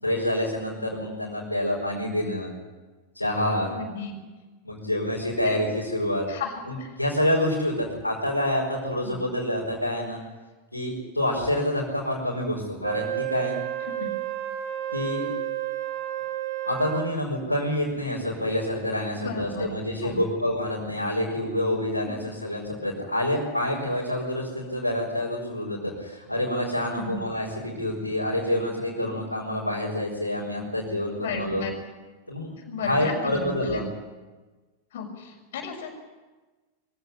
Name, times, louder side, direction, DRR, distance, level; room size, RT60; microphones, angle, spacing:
voice 1, 0.0-2.5 3.1-3.7 4.6-6.2 6.7-10.2 10.7-13.6 14.9-15.3 16.6-31.7 32.3-32.5 32.8-33.8, left 1 dB, 85° left, -5 dB, 4.9 m, -27 dB
voice 2, 3.7-4.1 5.4-5.6 6.3-6.5 6.8-6.9 9.0-9.1 13.8-14.1 19.2-19.7 20.0-20.2 22.1-22.2 26.9-27.2 29.0-29.2 31.2-31.7 32.7-33.8 34.9-35.9, left 5 dB, 55° left, 2 dB, 6.3 m, -34 dB
Wind instrument woodwind instrument, 12.8-17.2, right 13 dB, 60° right, 4.2 m, -31 dB
23.5 x 16.0 x 9.9 m, 1.2 s
figure-of-eight pair, 90°, 0 cm